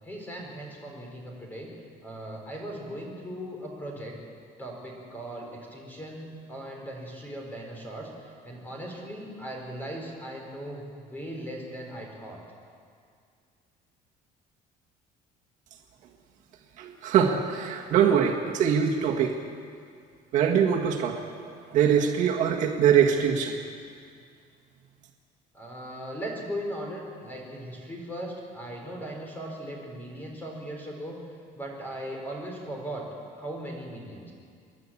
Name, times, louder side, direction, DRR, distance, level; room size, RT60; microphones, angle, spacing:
voice 1, 0.0-1.7 2.0-4.1 4.6-12.4 25.5-31.2 31.5-33.0 33.4-34.3, right 1 dB, 10° left, 0 dB, 4.0 m, -38 dB
voice 2, 16.8-19.4 20.3-23.6, right 8 dB, 55° right, 1 dB, 1.7 m, -23 dB
28.0 x 11.0 x 8.6 m, 2.2 s
cardioid pair, 180°, 15 cm